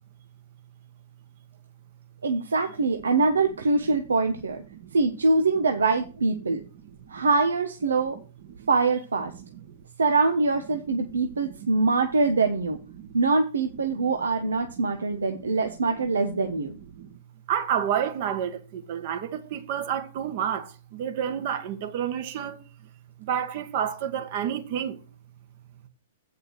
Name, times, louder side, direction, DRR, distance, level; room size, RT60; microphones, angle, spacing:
voice 1, 2.2-4.6 4.9-6.6 7.1-8.2 8.7-9.3 10.0-12.8 13.1-16.8, right 3 dB, 90° right, 1.0 m, -24 dB
voice 2, 11.1-11.7 13.0-13.2 13.9-14.1 14.9-15.0 16.9-17.2 17.5-22.6 23.2-25.0, right 9 dB, 50° right, 1.5 m, -30 dB
8.4 x 4.9 x 6.3 m
hypercardioid pair, 125°, 0 cm